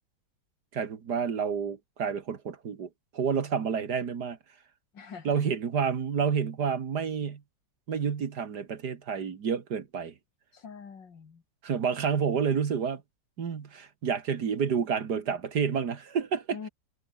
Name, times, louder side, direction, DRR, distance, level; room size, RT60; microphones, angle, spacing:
voice 1, 0.7-4.4 5.3-7.4 7.9-10.1 11.6-13.0 13.4-16.6, right 6 dB, 60° right, 2.2 m, -29 dB
voice 2, 4.9-5.4 10.5-11.4 16.5-16.7, left 6 dB, 70° left, 3.0 m, -44 dB
omnidirectional pair, 2.0 m